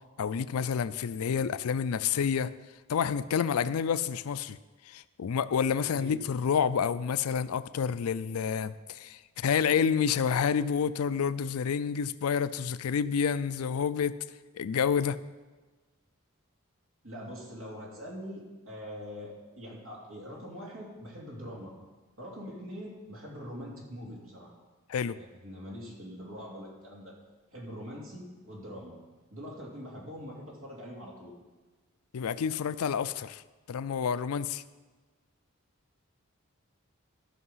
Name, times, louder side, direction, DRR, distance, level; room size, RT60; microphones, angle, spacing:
voice 1, 0.2-2.5 2.9-4.6 4.9-14.2 14.5-15.2 24.9-25.2 32.1-33.4 33.7-34.6, left 7 dB, 85° left, 15 dB, 0.4 m, -29 dB
voice 2, 17.0-21.7 22.2-24.5 25.1-27.1 27.5-28.9 29.3-31.3, equal, 70° right, -4 dB, 2.8 m, -43 dB
13.5 x 5.7 x 5.6 m, 1.3 s
head